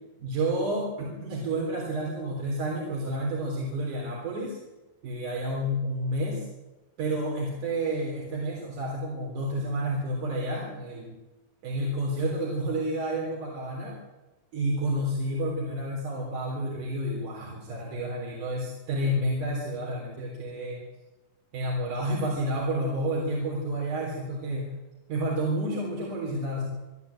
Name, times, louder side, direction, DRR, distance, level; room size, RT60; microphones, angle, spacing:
voice 1, 0.2-4.6 5.0-6.5 7.0-11.2 11.6-14.0 14.5-20.8 21.5-24.7 25.1-26.7, right 1 dB, 55° right, -3 dB, 5.1 m, -30 dB
26.0 x 12.0 x 8.7 m, 1.1 s
omnidirectional pair, 4.4 m